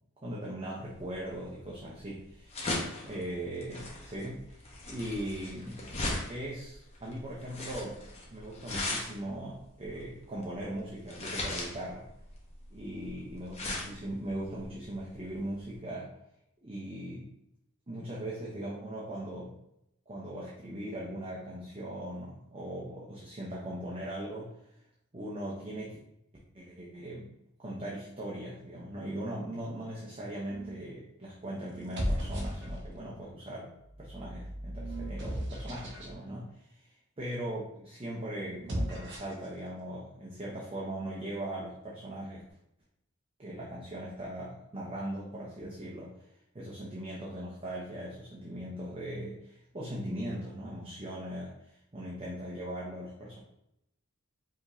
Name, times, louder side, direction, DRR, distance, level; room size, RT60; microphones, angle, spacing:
voice 1, 0.2-2.6 3.0-5.9 6.3-8.0 8.3-12.1 12.7-16.1 16.6-17.3 17.9-19.6 20.1-24.6 25.1-26.0 26.5-27.3 27.6-36.9 37.2-42.4 43.4-46.2 46.5-51.6 51.9-53.4, right 1 dB, 25° right, -5 dB, 0.7 m, -39 dB
sound 1, 1.0-15.7, left 2 dB, 30° left, 0.9 m, -39 dB
sound 2, 30.5-30.9 31.7-33.1 33.8-36.1 38.5-39.5, equal, 55° right, 1.0 m, -36 dB
5.0 x 2.9 x 2.7 m, 0.81 s
head